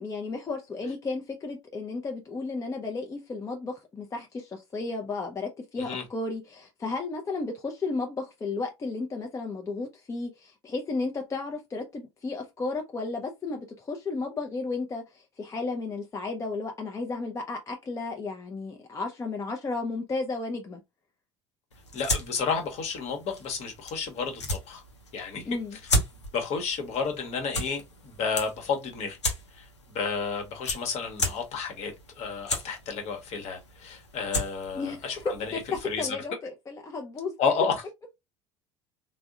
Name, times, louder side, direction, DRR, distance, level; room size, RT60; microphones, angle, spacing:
voice 1, 0.0-20.8 25.5-25.8 34.7-37.3, left 3 dB, 20° left, 0.5 m, -33 dB
sound 1, 21.7-36.1, left 1 dB, 85° left, 0.6 m, -35 dB
voice 2, 21.9-24.8 25.1-25.6 26.3-29.2 29.5-36.2 37.4-37.8, left 5 dB, 50° left, 1.0 m, -31 dB
3.5 x 2.1 x 2.3 m
figure-of-eight pair, 65°, 14 cm